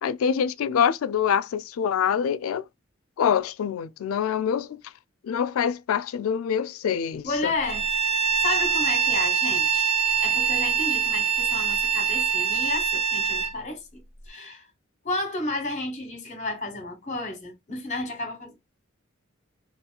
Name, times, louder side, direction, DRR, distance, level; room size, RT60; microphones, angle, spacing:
voice 1, 0.0-2.6 3.2-4.8 5.2-7.5, left 8 dB, 85° left, 0.3 m, -25 dB
voice 2, 7.2-7.8 8.4-9.9 10.2-14.0 14.3-14.7 15.0-18.5, left 2 dB, 35° left, 1.2 m, -32 dB
Bowed string instrument, 7.6-13.5, right 7 dB, 30° right, 0.6 m, -24 dB
3.0 x 2.9 x 2.2 m
head